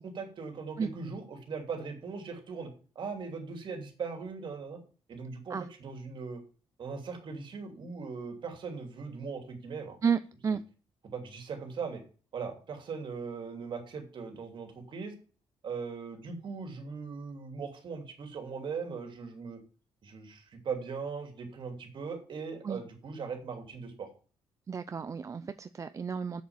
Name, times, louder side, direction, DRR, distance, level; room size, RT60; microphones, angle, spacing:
voice 1, 0.0-2.7 2.9-4.8 5.1-6.4 6.8-10.0 11.0-12.0 12.3-15.2 15.6-19.6 20.0-24.1, right 5 dB, 50° right, 5 dB, 2.8 m, -39 dB
voice 2, 10.0-10.6 22.6-22.8 24.7-26.4, right 6 dB, 30° right, 11 dB, 0.5 m, -32 dB
7.5 x 7.1 x 7.2 m, 0.38 s
cardioid pair, 130°, 10 cm